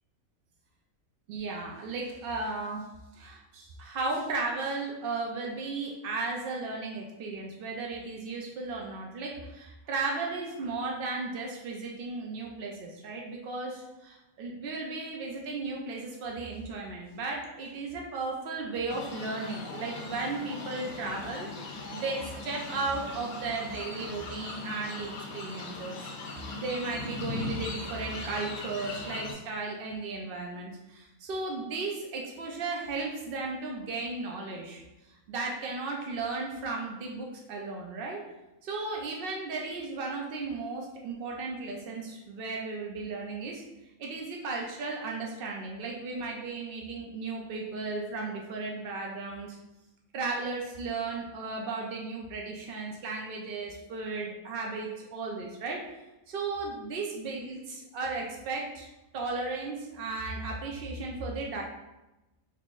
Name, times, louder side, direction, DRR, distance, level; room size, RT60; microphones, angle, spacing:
voice 1, 1.3-2.9 3.1-26.1 26.5-34.8 35.3-38.2 38.6-43.6 44.0-49.6 50.1-55.8 56.3-58.9 59.1-61.6, right 3 dB, 85° right, -1 dB, 0.5 m, -35 dB
sound 1, 18.9-29.3, left 3 dB, 65° left, 0.9 m, -39 dB
3.7 x 2.9 x 2.4 m, 1.0 s
omnidirectional pair, 1.5 m